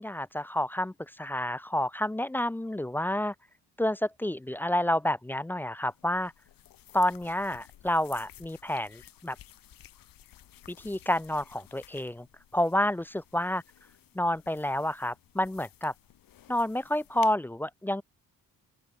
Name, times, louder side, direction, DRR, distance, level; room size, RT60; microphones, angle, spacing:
voice 1, 0.0-3.3 3.8-6.3 6.9-9.4 10.7-12.3 12.5-13.6 14.1-15.9 16.5-18.0, left 1 dB, 5° left, 0.4 m, -29 dB
sound 1, 5.9-17.4, left 13 dB, 70° left, 2.1 m, -55 dB
open air
cardioid pair, 100°, 35 cm